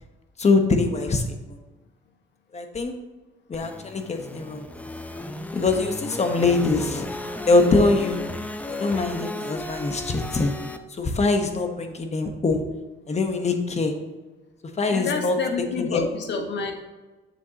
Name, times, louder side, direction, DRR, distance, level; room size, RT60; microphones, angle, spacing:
voice 1, 0.4-1.2 2.5-2.9 3.5-4.6 5.5-7.1 7.5-8.3 8.7-10.5 11.0-12.6 13.1-14.0 14.8-15.3 15.8-16.1, left 3 dB, 35° left, 5 dB, 1.1 m, -23 dB
sound 1, 3.5-10.8, left 2 dB, 5° left, 0.5 m, -34 dB
voice 2, 14.9-16.7, left 4 dB, 65° left, 3 dB, 1.3 m, -29 dB
7.5 x 6.9 x 2.8 m, 1.2 s
cardioid pair, 90°, 20 cm